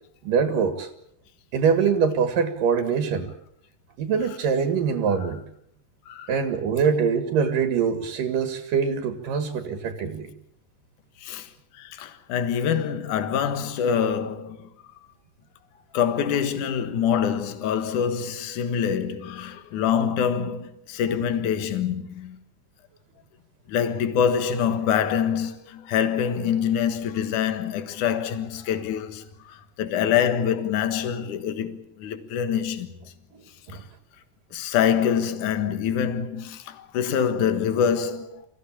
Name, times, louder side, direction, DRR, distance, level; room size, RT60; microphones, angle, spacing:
voice 1, 0.2-0.9 1.5-3.3 4.0-5.4 6.3-10.3 33.7-33.8, right 6 dB, 85° right, 3.6 m, -23 dB
voice 2, 11.8-14.7 15.9-22.4 23.7-32.9 34.5-38.4, left 8 dB, 70° left, 2.9 m, -25 dB
27.0 x 16.5 x 8.7 m
omnidirectional pair, 3.8 m